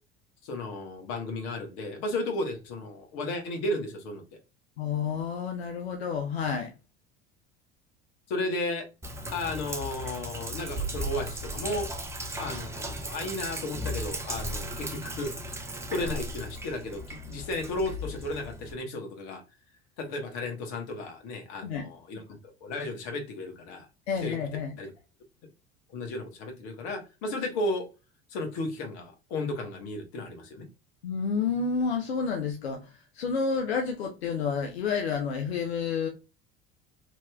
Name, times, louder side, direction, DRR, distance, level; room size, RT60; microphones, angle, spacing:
voice 1, 0.4-4.2 8.3-8.9 9.3-11.9 12.4-15.6 15.9-19.4 20.0-23.9 24.2-24.4 24.8-24.9 25.9-27.9 28.3-30.7, left 2 dB, 60° left, 1.1 m, -34 dB
voice 2, 4.8-6.7 21.6-21.9 24.1-24.8 31.0-36.1, left 5 dB, 90° left, 0.5 m, -30 dB
Sink (filling or washing), 9.0-18.7, right 1 dB, 10° right, 0.5 m, -36 dB
2.9 x 2.9 x 2.2 m
hypercardioid pair, 70°, 31 cm